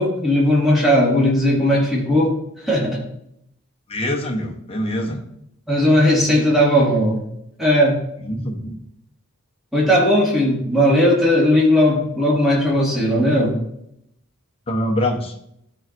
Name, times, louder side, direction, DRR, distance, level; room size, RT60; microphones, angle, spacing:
voice 1, 0.0-2.3 2.6-3.0 5.7-7.2 7.6-8.0 9.7-13.6, equal, ahead, -5 dB, 1.9 m, -17 dB
voice 2, 3.9-5.2 8.2-8.8 14.7-15.3, left 1 dB, 25° left, 1 dB, 0.9 m, -24 dB
12.5 x 4.4 x 2.6 m, 0.76 s
head